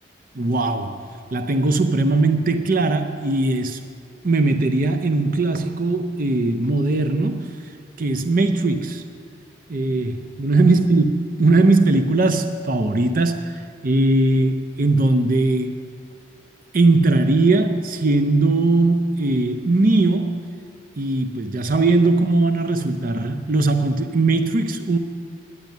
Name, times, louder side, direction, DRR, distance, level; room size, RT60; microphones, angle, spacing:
voice 1, 0.3-3.8 4.2-7.5 8.0-9.0 9.7-15.8 16.7-20.5 21.0-25.0, right 2 dB, 45° right, 0.6 m, -19 dB
10.5 x 9.6 x 9.3 m
head